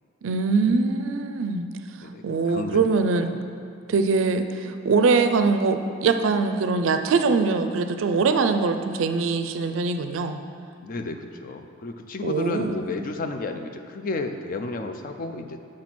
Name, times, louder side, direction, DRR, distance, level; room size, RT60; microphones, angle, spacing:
voice 1, 0.2-1.7 2.2-3.3 3.9-10.4 12.2-12.8, right 4 dB, 75° right, 8 dB, 0.4 m, -22 dB
voice 2, 2.0-2.8 3.1-3.3 10.8-15.6, left 3 dB, 45° left, 6 dB, 0.4 m, -32 dB
6.3 x 4.2 x 6.0 m, 2.5 s
head